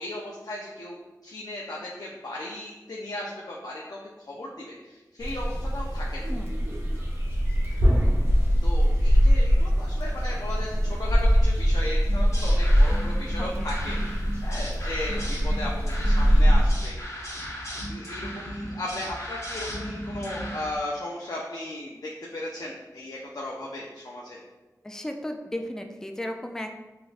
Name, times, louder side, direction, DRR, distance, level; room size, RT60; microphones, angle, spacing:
voice 1, 0.0-6.3 7.7-7.8 8.6-17.5 17.9-24.4, left 1 dB, 65° left, -4 dB, 0.5 m, -36 dB
sound 1, 5.2-16.7, equal, 35° right, 0.9 m, -22 dB
sound 2, 12.0-20.8, equal, 50° left, 1.1 m, -36 dB
voice 2, 13.4-13.7 24.8-26.7, left 1 dB, 10° left, 4 dB, 0.3 m, -35 dB
5.0 x 2.5 x 2.5 m, 1.1 s
wide cardioid pair, 50°, 7 cm